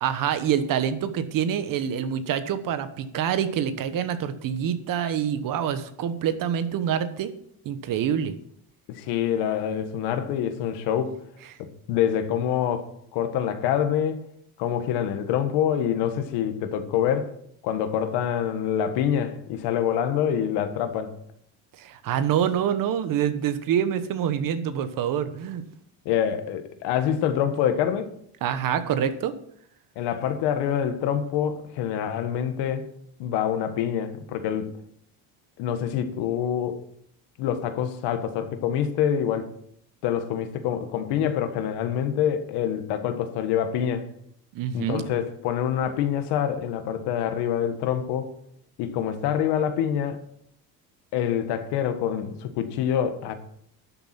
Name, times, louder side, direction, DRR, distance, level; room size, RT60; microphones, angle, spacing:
voice 1, 0.0-7.3 7.6-8.3 21.8-25.6 28.4-29.3 44.5-45.0, right 9 dB, 55° right, 1.2 m, -26 dB
voice 2, 8.9-11.2 11.6-14.3 14.6-17.3 17.6-21.1 26.0-28.1 29.9-32.9 33.2-34.7 35.6-36.8 37.4-39.5 40.0-44.1 44.7-48.3 48.8-50.2 51.1-53.3, left 9 dB, 90° left, 1.6 m, -26 dB
12.0 x 7.1 x 5.9 m
cardioid pair, 140°, 39 cm